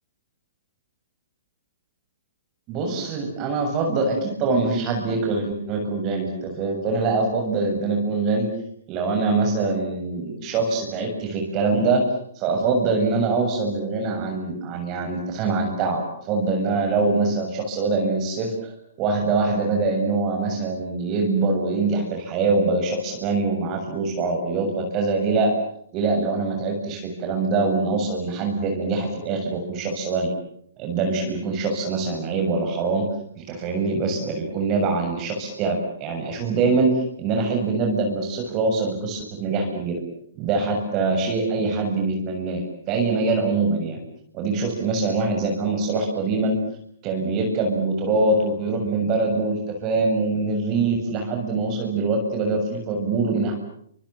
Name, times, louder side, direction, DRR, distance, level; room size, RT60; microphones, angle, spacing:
voice 1, 2.7-8.5 8.9-12.0 12.3-25.5 25.9-30.3 30.8-33.1 33.4-40.0 40.4-42.6 42.9-44.0 44.3-46.5 47.0-53.5, right 3 dB, 35° right, 2 dB, 7.1 m, -24 dB
27.5 x 26.5 x 7.5 m, 0.67 s
hypercardioid pair, 130°, 0 cm